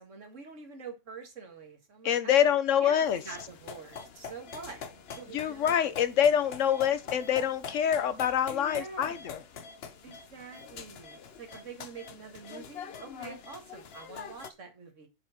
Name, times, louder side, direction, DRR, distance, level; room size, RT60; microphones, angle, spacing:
voice 1, 0.0-2.5 2.8-4.8 5.2-5.9 8.5-9.2 10.0-15.1, right 4 dB, 90° right, 2.1 m, -46 dB
voice 2, 2.0-3.2 5.3-9.4, left 9 dB, 85° left, 1.2 m, -26 dB
sound 1, 3.0-14.5, left 6 dB, 60° left, 1.0 m, -45 dB
7.2 x 5.0 x 6.4 m
omnidirectional pair, 1.2 m